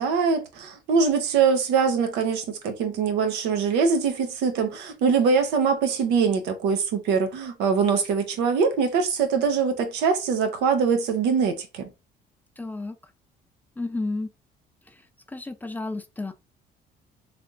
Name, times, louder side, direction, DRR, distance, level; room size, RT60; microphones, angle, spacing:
voice 1, 0.0-11.9, right 5 dB, 90° right, 0.8 m, -23 dB
voice 2, 12.6-13.0 13.8-14.3 15.3-16.3, left 2 dB, 10° left, 0.4 m, -31 dB
3.4 x 2.7 x 2.4 m
cardioid pair, 110°, 17 cm